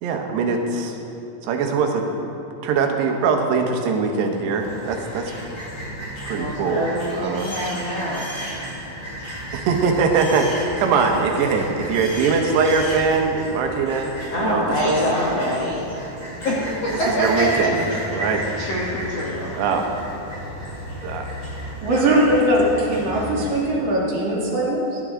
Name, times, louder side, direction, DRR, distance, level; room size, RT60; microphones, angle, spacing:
voice 1, 0.0-1.0 1.4-2.1 2.6-5.3 6.3-7.5 9.5-15.0 16.9-17.8 18.1-18.4 19.5-19.9 21.0-21.4, right 5 dB, 85° right, 3 dB, 3.2 m, -22 dB
sound 1, 4.6-23.6, equal, 15° left, 3.2 m, -33 dB
voice 2, 6.3-8.2 9.2-9.4 14.3-15.9 16.4-17.7 18.1-18.2 18.6-19.5, equal, 65° left, -5 dB, 1.6 m, -25 dB
voice 3, 21.8-25.0, right 1 dB, 50° right, -4 dB, 2.2 m, -20 dB
16.5 x 11.5 x 3.7 m, 2.8 s
omnidirectional pair, 4.8 m